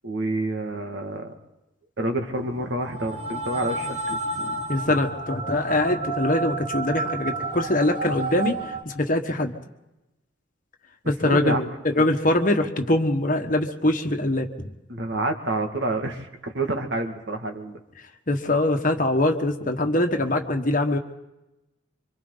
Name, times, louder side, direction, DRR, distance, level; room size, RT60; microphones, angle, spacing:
voice 1, 0.0-1.3 2.0-4.6 11.2-11.7 12.0-12.1 14.9-17.8, right 2 dB, 55° right, 4 dB, 2.2 m, -28 dB
sound 1, 2.3-8.8, right 3 dB, 30° right, 2.5 m, -31 dB
voice 2, 4.7-8.6 8.8-9.5 11.0-14.7 18.3-21.0, left 1 dB, 40° left, 5 dB, 1.5 m, -23 dB
26.0 x 25.0 x 4.1 m, 0.96 s
head